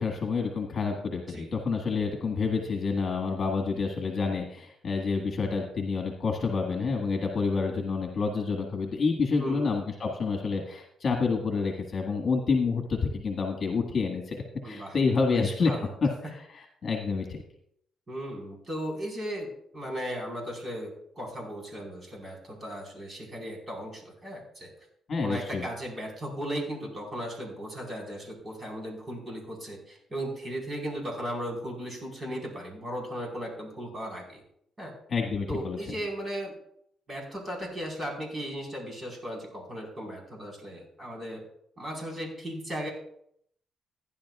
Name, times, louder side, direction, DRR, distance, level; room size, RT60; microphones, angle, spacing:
voice 1, 0.0-17.4 25.1-25.7 35.1-35.8, left 4 dB, 45° left, 3 dB, 1.7 m, -28 dB
voice 2, 14.6-15.0 15.3-15.9 18.1-24.7 25.2-34.4 34.8-34.9 35.5-36.5 37.1-41.4 41.8-42.9, equal, 30° right, 0 dB, 4.5 m, -36 dB
16.0 x 10.5 x 2.4 m, 0.71 s
cardioid pair, 90°, 0 cm